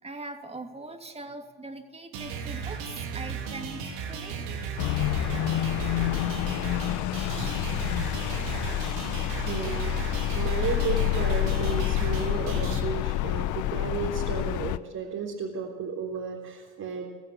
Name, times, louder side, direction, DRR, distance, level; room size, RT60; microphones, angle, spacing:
voice 1, 0.0-4.5 4.7-4.8 5.8-5.9 7.2-7.9 10.4-10.5, right 2 dB, 20° right, 5 dB, 2.9 m, -42 dB
sound 1, 2.1-12.8, right 6 dB, 75° right, 3.3 m, -35 dB
sound 2, 4.8-14.8, left 15 dB, 65° left, 0.9 m, -28 dB
voice 2, 9.2-10.0 10.3-17.1, right 5 dB, 50° right, -2 dB, 3.8 m, -33 dB
22.5 x 14.5 x 8.7 m, 1.4 s
hypercardioid pair, 70°, 33 cm